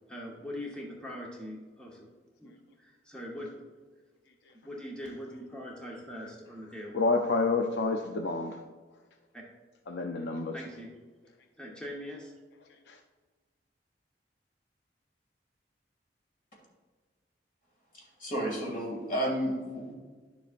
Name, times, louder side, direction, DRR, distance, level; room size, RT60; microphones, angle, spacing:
voice 1, 0.1-2.1 2.4-3.5 4.6-7.0 9.3-9.4 10.5-10.9 11.6-12.3, equal, 5° left, -3 dB, 1.0 m, -42 dB
voice 2, 6.9-8.6 9.9-10.6 12.7-13.0, left 3 dB, 75° left, 5 dB, 0.5 m, -29 dB
voice 3, 17.9-19.9, right 1 dB, 50° left, -2 dB, 2.3 m, -32 dB
11.0 x 7.1 x 2.5 m, 1.4 s
head